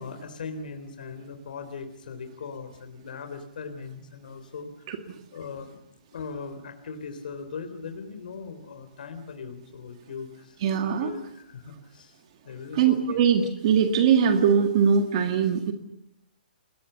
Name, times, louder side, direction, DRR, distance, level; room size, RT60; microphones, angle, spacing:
voice 1, 0.0-5.1 5.3-5.8 6.1-10.7 11.0-13.2, left 5 dB, 60° left, 7 dB, 3.7 m, -39 dB
voice 2, 10.6-11.1 12.7-15.7, right 7 dB, 35° right, 6 dB, 1.9 m, -21 dB
29.0 x 21.0 x 6.8 m, 0.78 s
hypercardioid pair, 165°, 5 cm